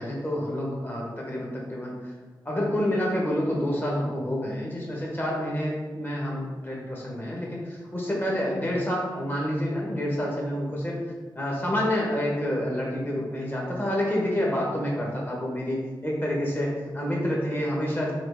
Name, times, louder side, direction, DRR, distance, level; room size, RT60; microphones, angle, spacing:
voice 1, 0.0-2.1 2.4-11.0 11.3-18.1, equal, 25° left, -4 dB, 1.2 m, -28 dB
3.8 x 3.0 x 3.5 m, 1.4 s
wide cardioid pair, 65°, 8 cm